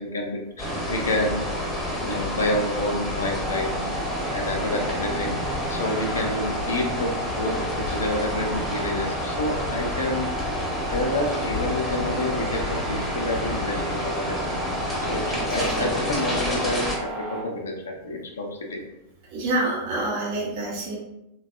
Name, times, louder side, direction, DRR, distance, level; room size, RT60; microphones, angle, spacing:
voice 1, 0.0-1.4 2.0-3.7 4.3-7.1 7.4-7.6 7.9-10.5 10.9-14.4 15.1-18.8, left 1 dB, 70° left, 1 dB, 0.4 m, -28 dB
sound 1, 0.6-17.0, equal, 5° left, 0.8 m, -29 dB
sound 2, 3.4-17.4, equal, 25° right, 1.1 m, -35 dB
voice 2, 15.5-15.9 19.3-21.0, right 2 dB, 50° right, -4 dB, 0.8 m, -27 dB
3.2 x 2.2 x 2.4 m, 0.88 s
figure-of-eight pair, 90°, 0 cm